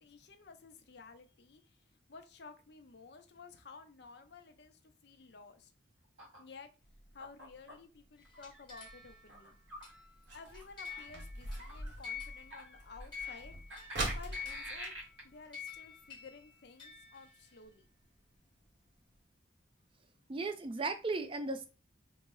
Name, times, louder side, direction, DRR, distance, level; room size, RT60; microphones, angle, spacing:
voice 1, 0.0-1.8 2.1-5.7 6.4-6.7 7.1-9.6 10.3-13.8 14.1-14.9 15.2-17.9, left 4 dB, 55° left, 0.5 m, -54 dB
sound 1, 6.2-6.4 7.2-7.7 8.2-8.6 9.3-9.9 10.4-10.7 11.6-12.1 12.5-13.1 13.7-15.2, right 1 dB, 80° right, 1.6 m, -47 dB
sound 2, 6.8-16.1 16.4-16.5 16.8-17.1 17.6-17.7 18.3-18.4 18.6-18.7 19.1-19.2, right 2 dB, 65° right, 1.0 m, -44 dB
sound 3, 8.2-12.8 13.1-17.6, left 7 dB, 25° left, 1.2 m, -48 dB
voice 2, 20.3-21.7, right 3 dB, 25° right, 0.3 m, -36 dB
3.8 x 2.0 x 3.7 m
head